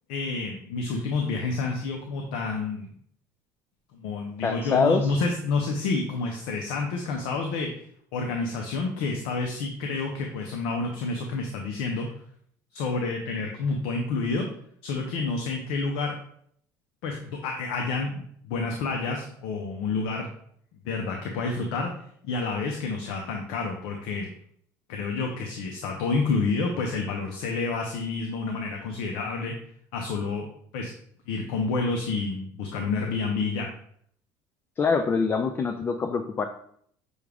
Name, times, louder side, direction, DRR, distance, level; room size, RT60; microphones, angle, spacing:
voice 1, 0.1-2.9 3.9-7.7 8.1-12.1 12.7-14.5 14.8-16.1 17.0-20.3 20.9-21.9 22.2-24.3 24.9-29.5 29.9-30.5 30.7-30.9 31.3-33.7, left 3 dB, 80° left, 2 dB, 0.6 m, -29 dB
voice 2, 4.4-5.1 34.8-36.4, left 5 dB, 25° left, 6 dB, 0.3 m, -24 dB
6.2 x 2.3 x 3.4 m, 0.65 s
supercardioid pair, 110°, 9 cm